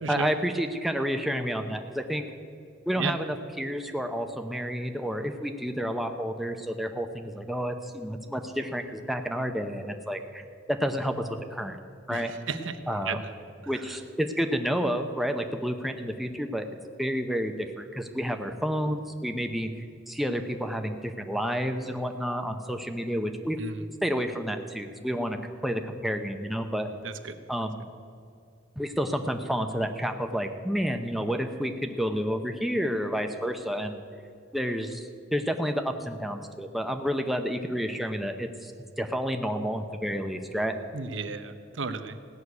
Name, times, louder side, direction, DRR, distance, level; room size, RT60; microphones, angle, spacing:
voice 1, 0.1-2.3 2.9-10.4 10.7-11.8 12.1-12.3 12.9-13.2 13.7-16.7 17.0-23.6 24.0-25.4 25.6-26.9 27.5-27.9 28.8-34.0 34.5-38.7 39.0-40.8, equal, ahead, 5 dB, 0.7 m, -30 dB
voice 2, 27.0-27.3 40.9-42.3, right 5 dB, 75° right, 9 dB, 0.8 m, -33 dB
16.5 x 6.5 x 9.5 m, 2.3 s
head